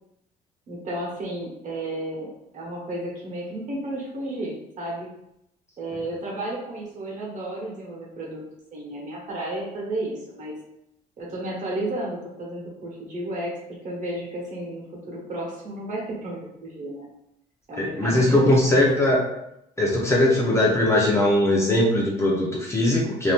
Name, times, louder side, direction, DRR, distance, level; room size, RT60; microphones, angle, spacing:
voice 1, 0.7-5.1 5.8-8.4 8.7-10.5 11.2-13.6 13.8-17.1 17.7-19.1, right 1 dB, 50° right, -3 dB, 1.1 m, -32 dB
voice 2, 17.8-19.2 19.8-23.3, left 1 dB, 15° left, -3 dB, 0.7 m, -20 dB
2.7 x 2.4 x 3.4 m, 0.80 s
cardioid pair, 110°, 17 cm